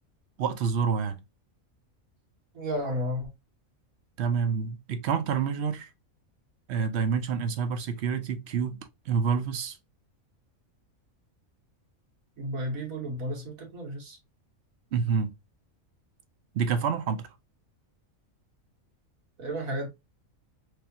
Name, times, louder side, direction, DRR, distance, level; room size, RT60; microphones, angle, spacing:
voice 1, 0.4-1.2 4.2-5.9 6.7-9.8 14.9-15.3 16.5-17.3, right 6 dB, 60° right, 0.8 m, -28 dB
voice 2, 2.5-3.3 12.4-14.2 19.4-19.9, equal, 85° right, 1.8 m, -32 dB
3.5 x 3.4 x 2.7 m
omnidirectional pair, 1.4 m